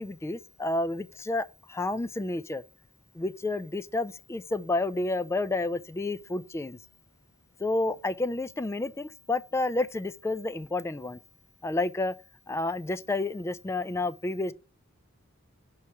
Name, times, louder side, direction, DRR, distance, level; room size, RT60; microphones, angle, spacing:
voice 1, 0.0-2.6 3.1-6.8 7.6-11.2 11.6-12.1 12.5-14.5, left 2 dB, 15° left, 0.3 m, -30 dB
5.9 x 3.2 x 5.6 m
head